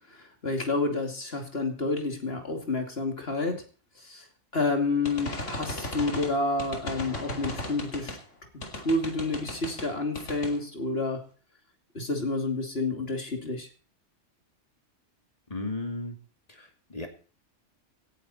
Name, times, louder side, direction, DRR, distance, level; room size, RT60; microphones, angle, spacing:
voice 1, 0.1-3.6 4.0-4.3 4.5-8.2 8.8-11.2 11.9-13.7, left 2 dB, 50° left, 4 dB, 2.9 m, -29 dB
sound 1, 5.0-8.2 8.6-9.9 10.1-10.6, left 1 dB, 70° left, 2.9 m, -36 dB
voice 2, 15.5-16.2 16.5-17.1, left 2 dB, 30° left, 4 dB, 2.7 m, -35 dB
17.5 x 11.0 x 4.3 m, 0.39 s
omnidirectional pair, 1.3 m